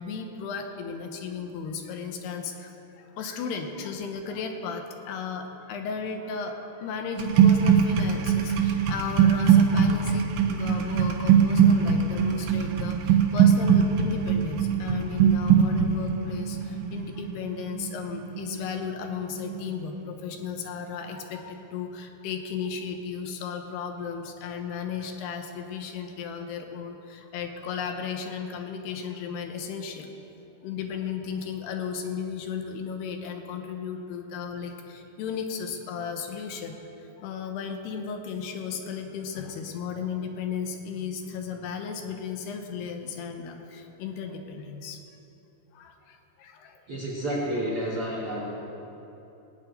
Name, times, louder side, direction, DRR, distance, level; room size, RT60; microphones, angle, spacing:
voice 1, 0.0-30.1 30.6-45.0 45.7-46.8, left 6 dB, 80° left, 5 dB, 3.0 m, -35 dB
sound 1, 7.2-19.1 19.3-19.7, right 7 dB, 85° right, 3.3 m, -22 dB
voice 2, 46.9-48.5, right 1 dB, 65° right, -5 dB, 1.4 m, -30 dB
18.0 x 6.0 x 9.1 m, 3.0 s
omnidirectional pair, 4.8 m